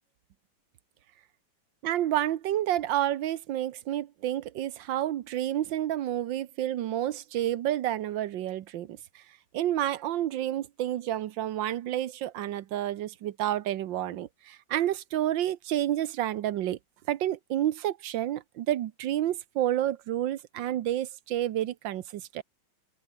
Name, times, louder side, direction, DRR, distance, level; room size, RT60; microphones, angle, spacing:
voice 1, 1.8-9.2 9.5-16.8 17.1-22.4, right 12 dB, 70° right, 1.6 m, -30 dB
open air
omnidirectional pair, 2.2 m